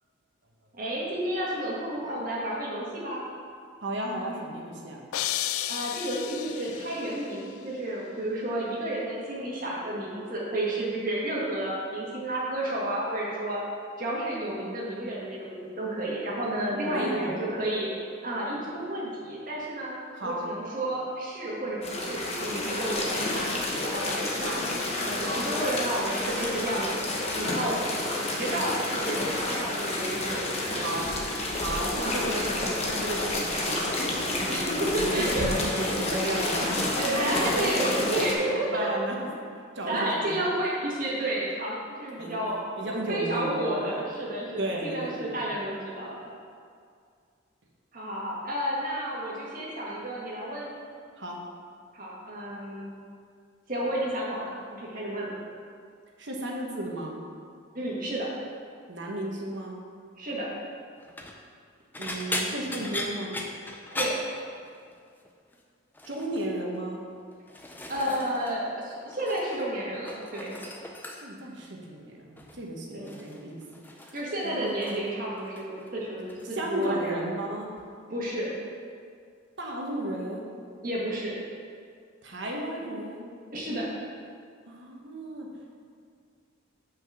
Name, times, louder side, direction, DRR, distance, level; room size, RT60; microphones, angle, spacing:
voice 1, 0.8-3.2 5.7-13.6 14.0-17.9 18.2-24.5 24.9-27.0 27.4-27.8 28.3-30.9 32.0-32.2 34.5-35.5 35.8-38.9 39.9-42.6 43.1-46.3 47.9-50.7 51.9-52.9 53.7-55.3 57.7-58.3 60.2-60.5 63.9-64.1 67.9-70.5 72.9-73.2 74.1-77.2 78.1-78.5 80.8-81.4 83.5-83.9, right 1 dB, 40° right, -5 dB, 1.7 m, -31 dB
voice 2, 3.8-5.0 16.9-17.4 20.1-20.5 24.4-24.7 25.2-25.5 27.3-27.8 30.7-31.1 31.6-34.6 34.9-39.2 39.7-40.4 42.2-42.3 42.8-44.0 44.6-45.4 51.2-51.4 56.2-57.1 58.9-59.8 62.0-63.3 66.1-67.0 71.2-73.6 74.0-74.1 74.4-74.8 76.5-77.7 79.6-80.4 82.2-83.2 84.7-85.5, right 1 dB, 55° right, -1 dB, 1.2 m, -34 dB
sound 1, 5.1-7.2, left 12 dB, 85° left, 0.3 m, -32 dB
sound 2, 21.8-38.3, left 2 dB, 30° left, 0.9 m, -30 dB
sound 3, 61.0-61.4 61.9-65.0 65.2-65.6 65.9-66.5 67.1-68.6 68.8-69.7 69.9-71.5 72.4-72.6 73.1-75.1 75.4-75.9 76.3-76.5 77.8-77.9, left 1 dB, 10° left, 0.4 m, -38 dB
5.8 x 5.3 x 6.3 m, 2.2 s
head